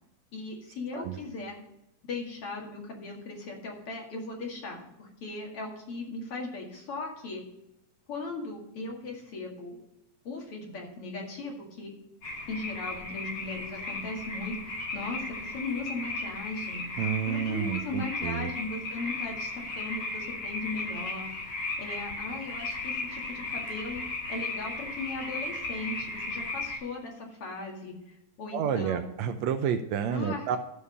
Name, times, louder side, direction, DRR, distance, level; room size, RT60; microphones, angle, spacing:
voice 1, 0.3-1.6 2.1-7.4 8.1-9.8 10.2-11.9 12.5-16.8 17.3-21.3 21.8-24.0 24.3-29.1 30.1-30.4, left 3 dB, 50° left, -1 dB, 2.9 m, -38 dB
sound 1, 12.2-26.8, left 2 dB, 80° left, 5.0 m, -36 dB
voice 2, 17.0-18.5 28.5-30.6, right 8 dB, 80° right, 9 dB, 1.8 m, -30 dB
12.5 x 4.9 x 6.7 m, 0.86 s
omnidirectional pair, 3.4 m